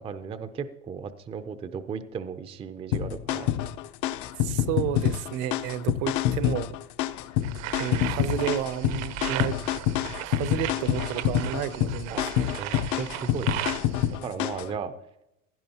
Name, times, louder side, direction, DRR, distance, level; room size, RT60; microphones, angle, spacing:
voice 1, 0.0-3.5 12.1-13.7 14.1-14.9, right 6 dB, 15° right, 11 dB, 0.4 m, -36 dB
sound 1, 2.9-14.7, left 12 dB, 50° left, 0.6 m, -27 dB
voice 2, 4.4-6.8 7.8-9.5 10.2-12.5, right 11 dB, 50° right, 16 dB, 0.7 m, -31 dB
sound 2, 7.4-14.2, right 12 dB, 80° right, 1.0 m, -36 dB
16.0 x 11.0 x 2.9 m, 0.86 s
supercardioid pair, 130°, 38 cm